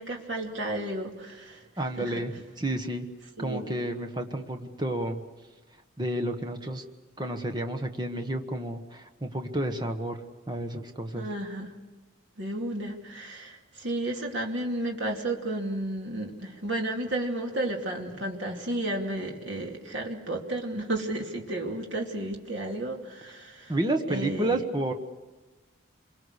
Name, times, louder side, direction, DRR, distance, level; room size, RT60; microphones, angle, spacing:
voice 1, 0.0-2.2 3.4-3.6 11.1-11.7 12.4-23.8 24.1-24.6, right 1 dB, 65° right, 2.7 m, -32 dB
voice 2, 1.8-3.1 3.4-5.2 6.0-6.8 7.2-10.2 10.5-11.3 23.7-24.9, right 1 dB, 20° right, 1.3 m, -30 dB
28.0 x 23.0 x 6.5 m
head